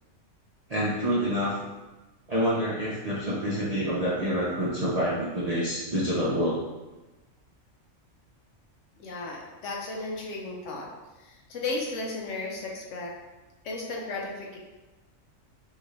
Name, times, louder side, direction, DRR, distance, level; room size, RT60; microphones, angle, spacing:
voice 1, 0.7-1.5 2.3-6.6, equal, 45° right, -6 dB, 0.5 m, -27 dB
voice 2, 9.0-10.9 11.2-13.1 13.6-14.6, left 3 dB, 65° left, -1 dB, 1.1 m, -34 dB
5.7 x 2.4 x 3.2 m, 1.1 s
omnidirectional pair, 1.4 m